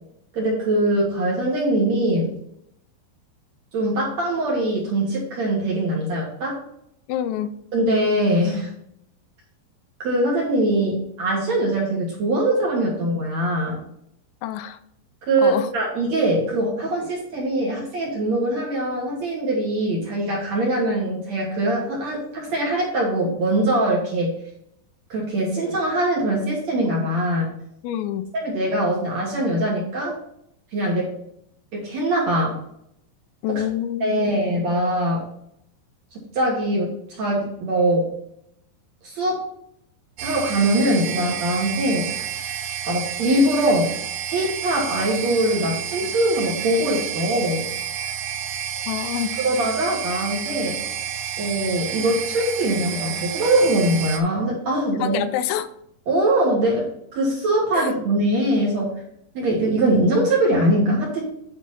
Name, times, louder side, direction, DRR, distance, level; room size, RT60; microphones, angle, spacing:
voice 1, 0.3-2.3 3.7-6.6 7.7-8.7 10.0-13.8 15.3-24.3 25.1-27.5 28.4-30.1 30.7-31.1 31.7-32.5 34.0-35.2 36.1-38.1 39.0-39.4 40.2-42.0 42.8-43.9 44.3-47.6 49.4-50.8 51.4-55.2 56.1-56.8 57.1-58.9 59.3-61.2, right 1 dB, 50° right, -3 dB, 2.4 m, -22 dB
voice 2, 7.1-7.5 14.4-14.8 15.4-15.7 27.8-28.3 33.4-34.4 48.9-49.3 55.0-55.7 57.7-57.9, left 11 dB, 85° left, 11 dB, 2.8 m, -27 dB
sound 1, 40.2-54.2, right 9 dB, 85° right, 3.1 m, -30 dB
9.3 x 4.3 x 5.6 m, 0.72 s
omnidirectional pair, 5.1 m